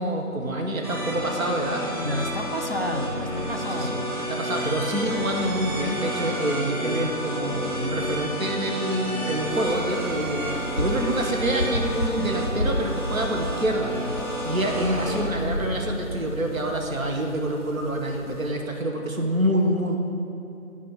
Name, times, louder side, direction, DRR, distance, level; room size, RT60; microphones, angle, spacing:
voice 1, 0.0-1.8 3.6-13.9 14.4-20.0, right 1 dB, 70° right, 2 dB, 1.2 m, -27 dB
sound 1, 0.8-15.2, equal, 25° right, 1.4 m, -30 dB
voice 2, 1.7-4.0, equal, 45° right, 4 dB, 0.5 m, -30 dB
sound 2, 9.5-18.5, equal, 45° left, 0.5 m, -33 dB
10.0 x 4.2 x 6.4 m, 2.7 s
figure-of-eight pair, 175°, 43 cm